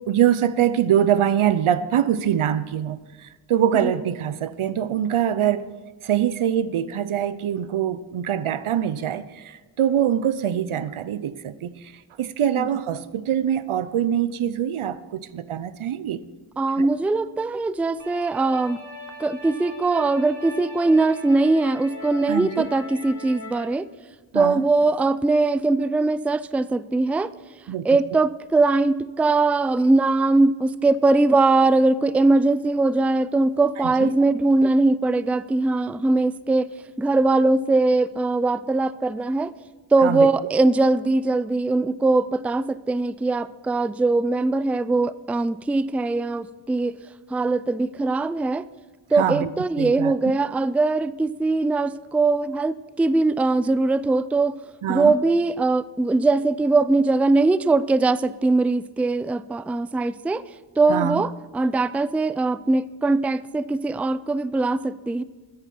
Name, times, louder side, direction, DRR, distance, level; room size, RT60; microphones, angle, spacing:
voice 1, 0.1-3.0 3.5-5.7 6.0-9.4 9.8-11.7 12.2-16.2 16.8-16.9 22.3-22.7 24.3-24.6 27.7-27.8 33.8-34.1 40.0-40.3 49.2-49.5 49.8-50.1 54.8-55.1 60.9-61.2, right 10 dB, 85° right, 0.7 m, -23 dB
voice 2, 16.6-18.8 19.2-23.9 24.3-27.3 27.8-36.7 37.0-39.5 39.9-47.0 47.3-48.6 49.1-54.5 54.9-60.4 60.8-65.2, right 3 dB, 5° right, 0.3 m, -21 dB
sound 1, 18.0-23.6, left 2 dB, 35° left, 3.9 m, -39 dB
13.0 x 10.5 x 5.5 m
cardioid pair, 45°, 48 cm